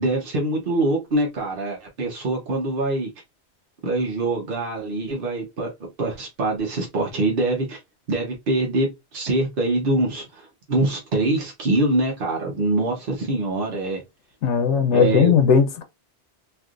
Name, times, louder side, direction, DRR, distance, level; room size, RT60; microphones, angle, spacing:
voice 1, 0.0-3.1 3.8-5.7 6.0-7.8 8.1-14.0 14.9-15.3, right 2 dB, 55° right, 1.0 m, -24 dB
voice 2, 14.4-15.8, left 6 dB, 90° left, 0.9 m, -17 dB
3.2 x 2.5 x 2.4 m
omnidirectional pair, 1.2 m